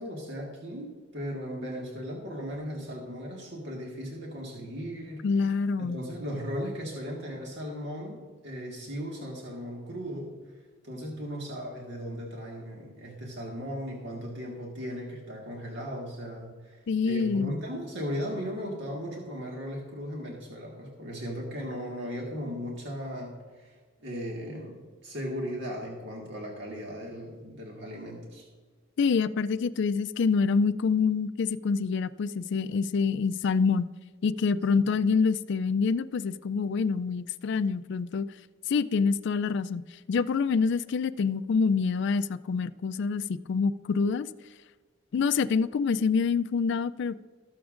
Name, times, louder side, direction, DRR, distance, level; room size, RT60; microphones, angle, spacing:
voice 1, 0.0-5.5 5.8-8.2 8.4-10.3 10.8-28.5 34.8-34.9, equal, 60° right, -2 dB, 1.7 m, -37 dB
voice 2, 5.2-6.0 16.9-17.6 29.0-33.9 34.2-38.3 38.7-44.3 45.1-47.2, left 5 dB, 60° left, 13 dB, 0.3 m, -26 dB
20.0 x 7.0 x 2.5 m, 1.5 s
head